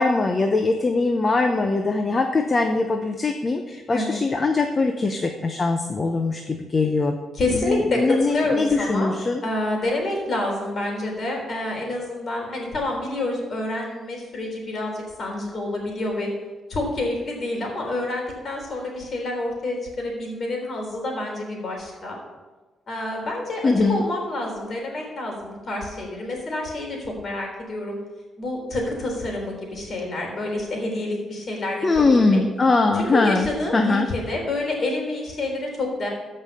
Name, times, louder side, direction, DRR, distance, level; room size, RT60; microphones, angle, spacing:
voice 1, 0.0-7.2 7.5-9.4 23.6-24.0 31.8-33.5 33.7-34.1, left 3 dB, 30° left, 4 dB, 0.8 m, -21 dB
voice 2, 7.3-8.0 8.3-9.1 9.4-16.3 16.7-22.2 22.9-28.0 28.4-32.4 32.9-36.1, left 2 dB, 50° left, 1 dB, 3.6 m, -28 dB
14.0 x 5.5 x 5.5 m, 1.2 s
cardioid pair, 110°, 0 cm